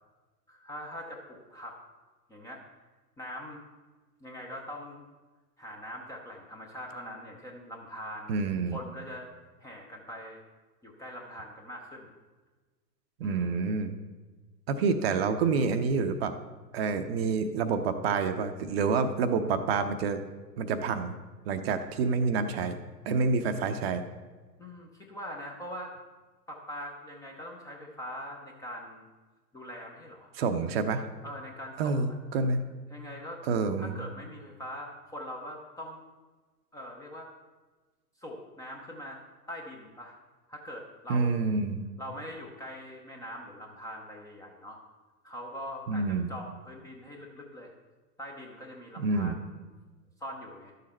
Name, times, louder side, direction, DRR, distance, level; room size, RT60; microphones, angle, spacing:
voice 1, 0.5-1.8 2.3-2.6 3.2-3.6 4.2-5.0 5.6-8.4 8.7-9.3 9.6-10.4 10.8-12.1 13.2-13.7 24.6-25.9 26.5-29.1 29.5-30.3 31.2-32.2 32.9-33.4 33.8-36.0 36.7-37.3 38.2-39.2 39.5-40.2 40.5-41.5 42.0-44.8 45.2-47.7 48.2-49.6 50.2-50.7, equal, 5° left, 0 dB, 0.6 m, -42 dB
voice 2, 8.3-8.8 13.2-14.0 14.7-16.3 16.7-20.2 20.6-21.1 21.5-22.8 23.1-24.0 30.4-31.1 31.8-32.7 33.5-34.1 41.1-41.8 45.9-46.3 49.0-49.4, right 4 dB, 40° right, 9 dB, 0.7 m, -28 dB
11.5 x 6.6 x 4.3 m, 1.3 s
figure-of-eight pair, 110°, 48 cm